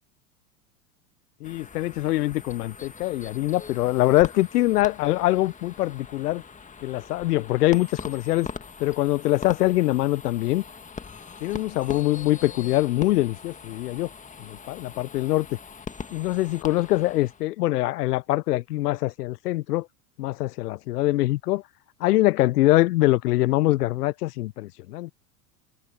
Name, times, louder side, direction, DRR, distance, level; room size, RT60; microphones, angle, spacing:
voice 1, 1.4-6.4 6.8-8.5 8.8-10.6 11.4-14.1 14.4-15.5 16.1-19.9 20.2-21.6 22.0-25.1, left 17 dB, 75° left, 0.7 m, -23 dB
sound 1, 1.4-17.5, left 5 dB, 15° left, 1.8 m, -42 dB
hypercardioid pair, 95°, 47 cm